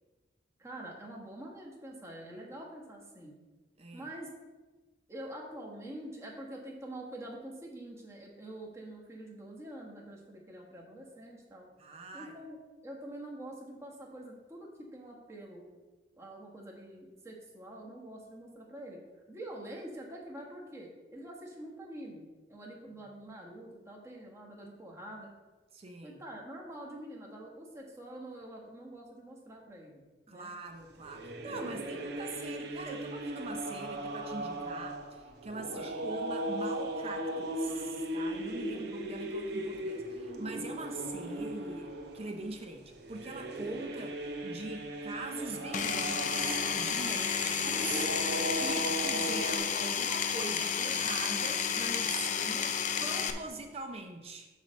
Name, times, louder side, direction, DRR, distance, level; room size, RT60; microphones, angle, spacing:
voice 1, 0.6-3.3 3.9-4.3 5.1-11.7 12.1-15.7 16.2-19.0 19.3-22.2 22.5-25.3 26.0-30.0 30.3-30.5 31.4-32.0 35.5-35.9 38.7-38.9 47.1-47.6 48.6-49.0, right 1 dB, 15° right, -2 dB, 1.3 m, -46 dB
voice 2, 11.8-12.3 25.7-26.2 30.3-48.1 48.5-54.5, right 3 dB, 35° right, 4 dB, 0.5 m, -42 dB
sound 1, 30.9-49.6, right 1 dB, 65° right, 0.8 m, -38 dB
Power tool, 45.7-53.3, left 7 dB, 45° left, 0.5 m, -31 dB
8.1 x 3.2 x 6.3 m, 1.3 s
head